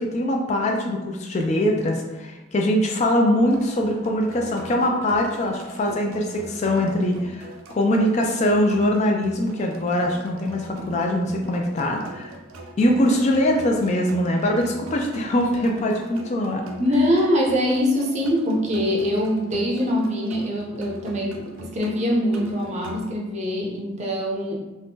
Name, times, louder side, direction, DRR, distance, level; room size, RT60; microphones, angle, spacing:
voice 1, 0.0-12.3 12.8-16.6, left 1 dB, 35° left, 2 dB, 0.3 m, -22 dB
sound 1, 3.5-23.0, right 1 dB, 90° right, 0.5 m, -41 dB
voice 2, 16.8-24.6, equal, 35° right, -1 dB, 0.5 m, -23 dB
2.6 x 2.5 x 3.5 m, 1.1 s
head